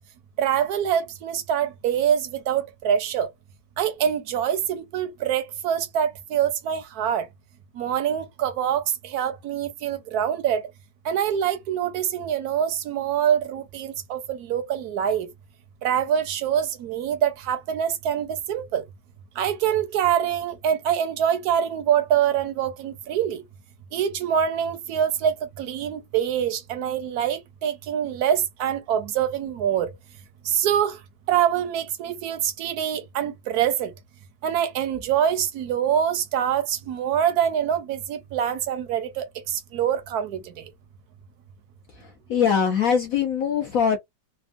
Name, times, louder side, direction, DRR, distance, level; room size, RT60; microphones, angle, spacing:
voice 1, 0.4-3.3 3.8-7.3 7.8-10.7 11.0-15.3 15.8-18.8 19.4-23.4 23.9-29.9 30.5-31.0 31.3-33.9 34.4-40.5, right 9 dB, 70° right, 1.0 m, -25 dB
voice 2, 42.3-44.0, left 7 dB, 65° left, 0.9 m, -21 dB
3.4 x 2.1 x 2.4 m
omnidirectional pair, 2.0 m